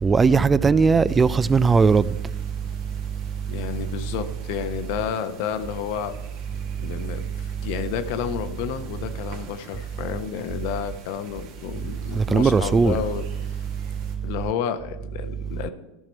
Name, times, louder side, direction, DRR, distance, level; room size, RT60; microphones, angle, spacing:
voice 1, 0.0-2.2 12.1-13.0, right 5 dB, 20° right, 0.3 m, -18 dB
sound 1, 1.1-14.2, right 5 dB, 60° right, 1.8 m, -46 dB
voice 2, 3.5-6.1 6.8-13.2 14.2-15.7, left 8 dB, 65° left, 0.9 m, -30 dB
13.5 x 5.9 x 4.5 m
hypercardioid pair, 105°, 0 cm